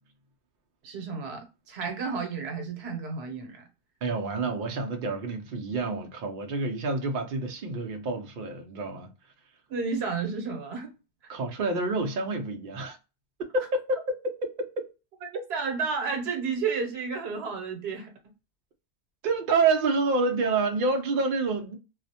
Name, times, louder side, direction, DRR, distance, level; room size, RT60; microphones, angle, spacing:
voice 1, 0.8-3.6 9.7-10.9 15.2-18.1, right 5 dB, 80° right, 1.0 m, -32 dB
voice 2, 4.0-9.1 11.3-13.0 13.5-14.2 14.4-14.8 19.2-21.8, right 3 dB, 60° right, 0.6 m, -28 dB
2.3 x 2.0 x 2.7 m
omnidirectional pair, 1.1 m